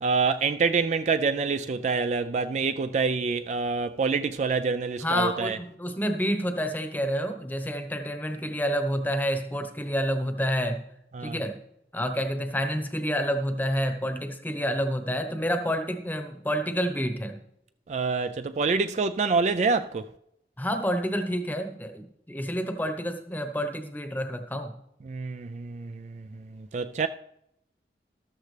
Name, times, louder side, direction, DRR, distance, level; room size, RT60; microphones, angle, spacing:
voice 1, 0.0-5.6 11.1-11.4 17.9-20.1 25.0-27.1, right 4 dB, 40° right, 0.3 m, -26 dB
voice 2, 5.0-10.8 11.2-11.6 11.9-17.4 20.6-24.7, equal, 10° left, 0.9 m, -29 dB
13.0 x 13.0 x 3.3 m
head